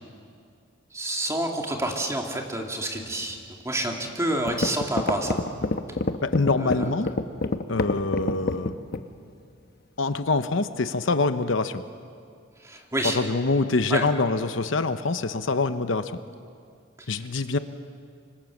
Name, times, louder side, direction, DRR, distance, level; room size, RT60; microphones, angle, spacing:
voice 1, 0.9-3.4 3.6-5.4 6.6-6.9 12.6-13.2 13.9-14.1, right 1 dB, 15° right, 1 dB, 2.7 m, -28 dB
sound 1, 4.0-4.1 4.5-9.1, left 2 dB, 50° left, 1.1 m, -26 dB
voice 2, 6.2-7.1 7.7-8.7 10.0-11.8 13.1-16.2 17.1-17.6, left 3 dB, 65° left, 10 dB, 0.9 m, -25 dB
26.0 x 25.0 x 7.3 m, 2.3 s
head